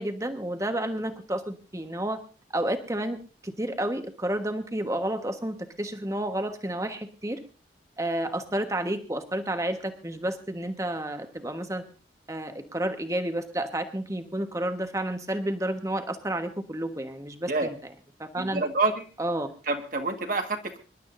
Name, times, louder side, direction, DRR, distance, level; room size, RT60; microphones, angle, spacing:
voice 1, 0.0-2.2 2.5-3.2 3.4-7.4 8.0-11.8 12.3-17.7 18.2-18.6 19.2-19.5, right 1 dB, 15° right, 7 dB, 1.3 m, -30 dB
voice 2, 18.4-19.0 19.7-20.8, right 3 dB, 45° right, 5 dB, 1.7 m, -27 dB
26.0 x 12.0 x 2.6 m, 0.35 s
head